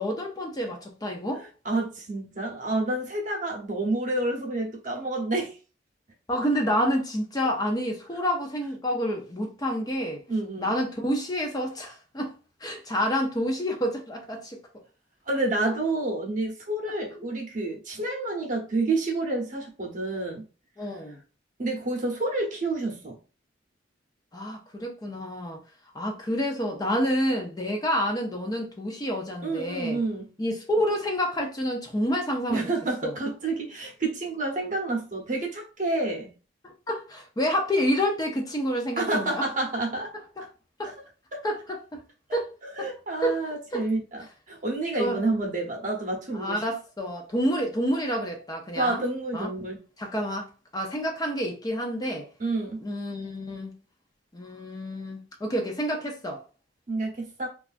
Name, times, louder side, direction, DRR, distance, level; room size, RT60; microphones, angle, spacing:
voice 1, 0.0-1.4 6.3-10.2 10.6-12.3 12.6-14.6 20.8-21.2 24.3-25.6 25.9-30.0 30.4-32.7 33.0-33.1 36.6-39.5 40.4-40.5 40.8-40.9 41.4-42.0 42.3-42.5 42.8-42.9 43.2-43.4 43.7-43.8 45.0-45.2 46.3-49.0 49.3-49.5 50.0-52.3 52.8-53.7 54.3-56.4, equal, 20° left, 0.5 m, -28 dB
voice 2, 1.3-5.6 10.3-10.7 15.3-20.5 21.6-23.2 29.4-30.3 32.5-36.3 39.0-40.1 40.8-40.9 41.3-41.4 42.3-42.4 42.7-46.6 48.8-49.8 52.4-52.8 56.9-57.5, right 2 dB, 45° right, 0.8 m, -29 dB
3.2 x 2.3 x 2.5 m
head